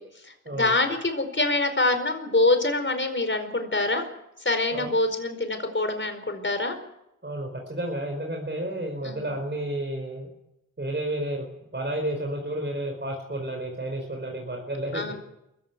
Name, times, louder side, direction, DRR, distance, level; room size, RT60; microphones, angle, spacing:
voice 1, 0.2-4.0 4.4-6.8 9.0-9.4 14.9-15.1, left 2 dB, 40° left, 7 dB, 4.8 m, -25 dB
voice 2, 7.2-10.3 10.8-11.5 11.7-15.1, right 1 dB, 35° right, 2 dB, 4.9 m, -31 dB
22.5 x 15.5 x 9.4 m, 0.87 s
cardioid pair, 60°, 31 cm